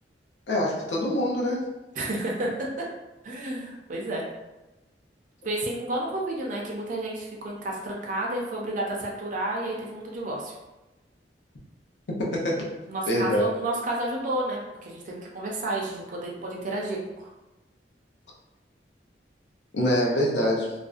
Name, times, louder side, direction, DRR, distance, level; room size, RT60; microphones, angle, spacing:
voice 1, 0.5-1.7 12.1-12.7 13.1-13.4 19.7-20.7, equal, 75° left, -2 dB, 0.6 m, -25 dB
voice 2, 2.0-2.9 3.2-4.2 5.4-10.5 12.9-17.3, right 1 dB, 45° right, -3 dB, 0.5 m, -31 dB
2.5 x 2.1 x 2.4 m, 1.0 s
head